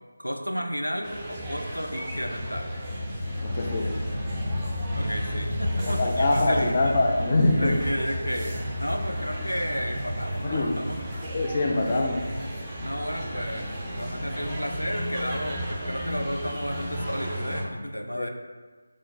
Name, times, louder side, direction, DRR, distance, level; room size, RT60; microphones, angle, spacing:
voice 1, 0.2-2.7 4.9-6.9 7.6-11.0 12.8-18.3, equal, 85° left, 4 dB, 0.5 m, -32 dB
sound 1, 1.0-17.6, right 1 dB, 10° right, 0.6 m, -35 dB
sound 2, 2.1-14.5, left 1 dB, 65° left, 1.0 m, -33 dB
voice 2, 3.4-4.0 5.9-7.7 10.4-10.7 11.3-12.3 13.2-13.3 18.1-18.3, left 2 dB, 30° left, 1 dB, 0.5 m, -24 dB
3.8 x 3.1 x 3.9 m, 1.4 s
figure-of-eight pair, 160°, 0 cm